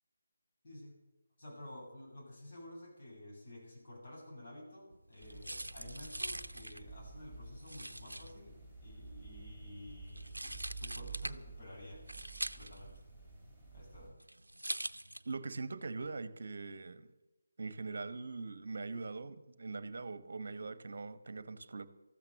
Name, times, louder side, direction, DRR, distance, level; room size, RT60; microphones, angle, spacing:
voice 1, 0.6-1.0 1.4-12.1 12.5-12.9 13.7-14.1, left 1 dB, 45° left, 7.9 m, -51 dB
sound 1, 4.9-15.6, right 1 dB, 80° right, 0.6 m, -44 dB
sound 2, 5.2-14.1, right 3 dB, 15° left, 6.9 m, -51 dB
voice 2, 15.2-17.1 17.6-21.8, right 3 dB, 55° right, 1.0 m, -42 dB
14.0 x 13.0 x 6.8 m
figure-of-eight pair, 150°, 0 cm